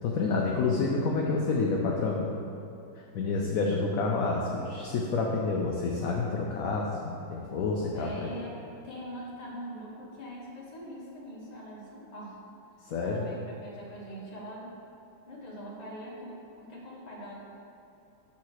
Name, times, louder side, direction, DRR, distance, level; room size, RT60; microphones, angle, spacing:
voice 1, 0.0-2.3 3.1-8.3 12.9-13.2, left 3 dB, 65° left, -1 dB, 0.9 m, -28 dB
voice 2, 7.9-12.4 13.0-14.8 15.3-17.3, equal, 25° left, -5 dB, 1.1 m, -43 dB
5.8 x 4.3 x 6.3 m, 2.8 s
omnidirectional pair, 2.0 m